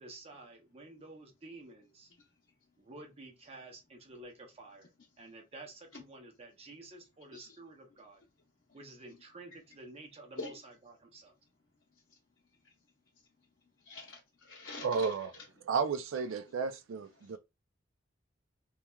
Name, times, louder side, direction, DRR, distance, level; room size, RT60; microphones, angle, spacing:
voice 1, 0.0-2.1 2.8-8.2 8.7-11.3, right 2 dB, 30° right, 0.6 m, -51 dB
voice 2, 13.8-15.5 16.4-16.5 17.2-17.4, left 3 dB, 65° left, 0.8 m, -47 dB
voice 3, 14.8-15.3 15.7-17.4, right 5 dB, 80° right, 0.4 m, -32 dB
2.9 x 2.3 x 2.2 m
head